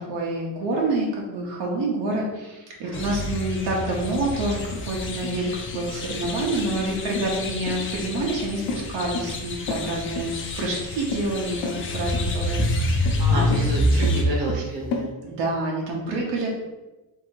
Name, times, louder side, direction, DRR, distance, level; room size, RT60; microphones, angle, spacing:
voice 1, 0.1-10.3 10.6-13.4 15.2-16.5, right 2 dB, 90° right, -2 dB, 1.0 m, -27 dB
voice 2, 2.8-3.2 13.2-15.1, right 1 dB, 55° right, -2 dB, 1.2 m, -30 dB
sound 1, 2.9-14.2, left 1 dB, 30° left, 0.4 m, -27 dB
sound 2, 4.2-15.1, left 4 dB, 70° left, 0.7 m, -34 dB
2.8 x 2.8 x 4.4 m, 1.1 s
cardioid pair, 170°, 43 cm